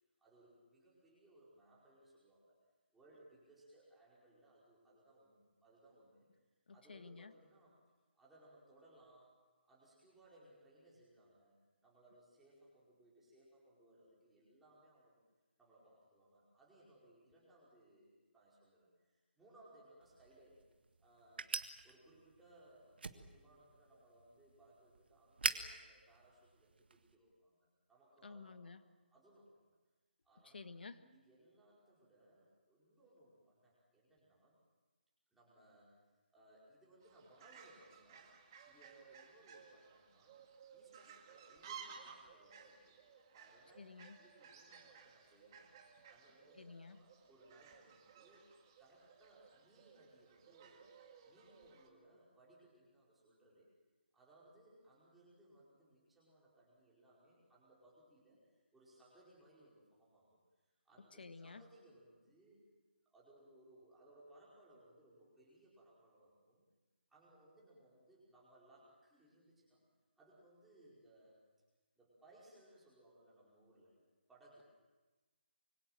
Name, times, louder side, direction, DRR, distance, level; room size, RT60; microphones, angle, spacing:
voice 1, 0.2-2.7 2.9-7.8 8.1-9.4 9.6-15.2 15.6-20.6 21.0-28.8 29.1-29.7 30.2-30.6 31.0-34.6 35.3-36.0 36.3-38.4 38.6-40.4 40.7-43.0 43.3-43.8 44.2-45.7 46.1-48.5 48.8-50.9 51.2-53.7 54.1-62.6 63.0-66.7 67.1-69.8 70.2-71.4 71.9-74.0 74.3-74.6, right 1 dB, 5° right, -7 dB, 5.0 m, -65 dB
voice 2, 6.7-7.3 28.2-28.8 30.4-31.0 43.8-44.2 46.6-47.0 61.2-61.6, left 4 dB, 65° left, 10 dB, 1.6 m, -52 dB
sound 1, 20.0-27.2, right 4 dB, 65° right, 1.8 m, -46 dB
Fowl, 37.0-51.9, right 7 dB, 20° right, 2.1 m, -58 dB
26.5 x 24.5 x 7.6 m, 1.2 s
hypercardioid pair, 175°, 6 cm